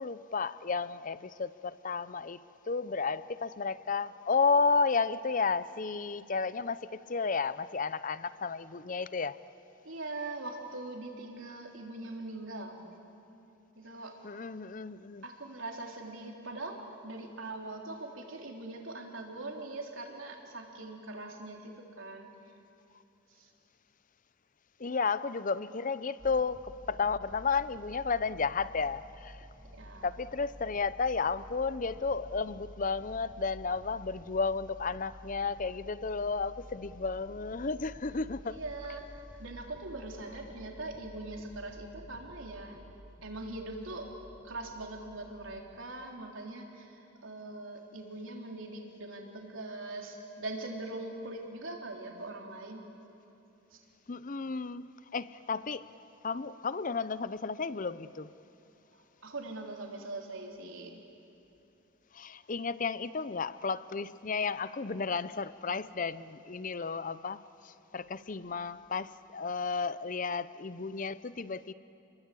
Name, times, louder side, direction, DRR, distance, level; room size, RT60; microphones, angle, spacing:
voice 1, 0.0-9.4 14.2-15.2 24.8-29.5 30.0-38.6 54.1-55.9 56.2-58.3 62.1-71.7, left 4 dB, 40° left, 16 dB, 0.6 m, -32 dB
voice 2, 9.8-12.8 13.8-14.2 15.2-22.3 23.3-23.5 29.7-30.1 38.4-42.8 43.2-44.1 44.4-52.8 53.7-53.8 58.9-61.0, right 2 dB, 75° right, 1 dB, 3.6 m, -42 dB
sound 1, 26.2-45.8, equal, 15° right, 1.1 m, -51 dB
29.5 x 22.0 x 8.5 m, 3.0 s
head